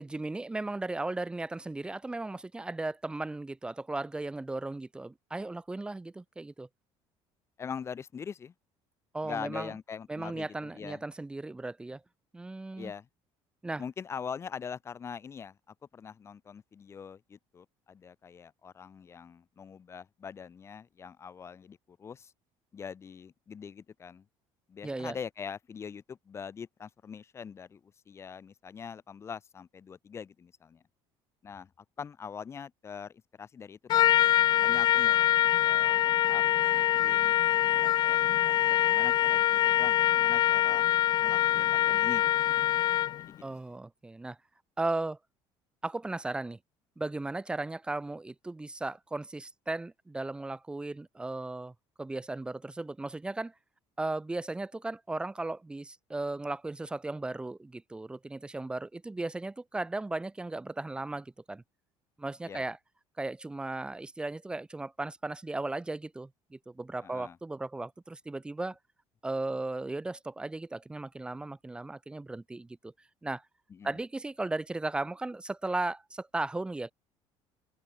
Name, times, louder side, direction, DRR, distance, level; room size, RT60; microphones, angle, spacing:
voice 1, 0.0-6.7 9.1-9.7 10.1-12.0 12.3-12.9 13.6-13.8 24.8-25.2 43.4-44.4 44.8-45.2 45.8-46.6 47.0-53.5 54.0-61.6 62.2-62.8 63.2-68.8 69.2-72.9 73.2-73.4 73.8-76.9, right 2 dB, 10° right, 1.3 m, -36 dB
voice 2, 7.6-8.5 9.2-11.0 12.8-13.1 13.8-15.6 15.9-22.3 22.7-24.3 24.7-30.8 31.4-31.7 32.0-34.2 34.6-35.4 35.6-37.4 37.7-40.8 41.2-42.3 43.2-43.4 62.4-62.6 67.0-67.4 73.7-74.0, left 6 dB, 25° left, 2.0 m, -43 dB
Trumpet, 33.9-43.3, left 12 dB, 40° left, 0.6 m, -24 dB
open air
cardioid pair, 165°, 11 cm